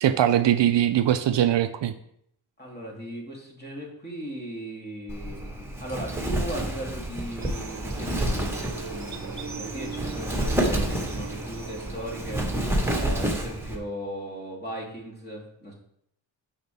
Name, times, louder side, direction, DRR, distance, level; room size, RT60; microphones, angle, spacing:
voice 1, 0.0-1.9, right 11 dB, 65° right, 10 dB, 0.6 m, -21 dB
voice 2, 2.6-8.5 8.9-15.7, right 1 dB, 20° left, -3 dB, 2.9 m, -38 dB
Wind, 5.1-13.8, right 1 dB, 5° right, 1.6 m, -29 dB
sound 1, 7.4-13.0, right 5 dB, 35° right, 1.1 m, -40 dB
6.4 x 5.8 x 3.5 m, 0.73 s
cardioid pair, 50°, 48 cm